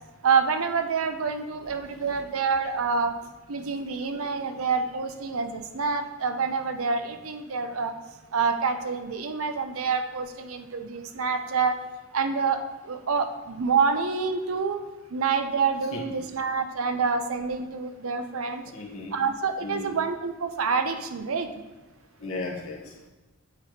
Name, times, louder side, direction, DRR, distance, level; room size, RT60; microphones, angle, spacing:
voice 1, 0.2-3.1 3.5-7.9 8.3-11.8 12.1-14.8 15.1-18.6 19.1-21.5, right 5 dB, 75° right, 8 dB, 0.6 m, -27 dB
voice 2, 1.7-2.3 3.9-4.0 15.9-16.2 18.6-19.2 19.6-20.0 22.2-23.1, left 2 dB, 70° left, -2 dB, 1.2 m, -37 dB
8.8 x 3.1 x 4.9 m, 1.1 s
head